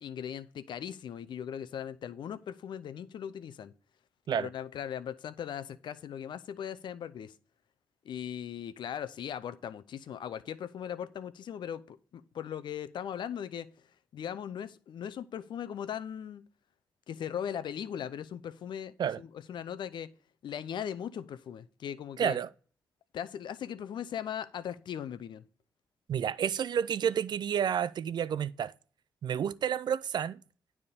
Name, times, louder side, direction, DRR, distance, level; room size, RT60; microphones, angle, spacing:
voice 1, 0.0-3.7 4.4-7.3 8.0-13.7 14.1-16.4 17.1-20.1 20.4-22.4 23.1-25.4, left 9 dB, 70° left, 0.6 m, -39 dB
voice 2, 22.2-22.5 26.1-28.7 29.2-30.4, right 8 dB, 65° right, 0.5 m, -30 dB
9.7 x 3.6 x 6.6 m
supercardioid pair, 45°, 8 cm